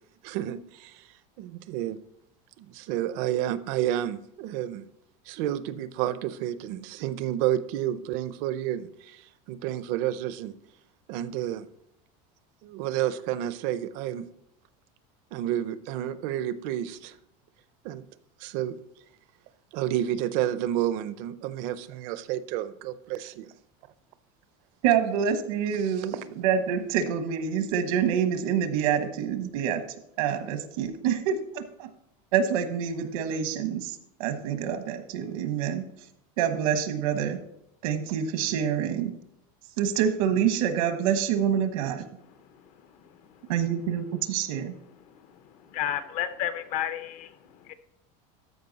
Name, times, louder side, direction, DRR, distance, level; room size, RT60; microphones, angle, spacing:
voice 1, 0.2-1.0 1.4-2.0 2.6-4.8 5.3-10.5 11.1-11.6 12.6-14.3 15.3-17.2 17.8-18.1 18.4-18.7 19.7-23.5, right 12 dB, 50° right, 14 dB, 0.6 m, -30 dB
voice 2, 24.8-29.8 30.2-31.9 32.3-35.8 36.4-37.4 37.8-39.1 39.8-42.1 43.5-44.7, right 8 dB, 85° right, 9 dB, 1.2 m, -27 dB
voice 3, 42.4-42.7 43.0-43.5 45.0-47.7, left 10 dB, 40° left, 12 dB, 0.6 m, -34 dB
13.5 x 5.2 x 4.0 m, 0.76 s
cardioid pair, 175°, 18 cm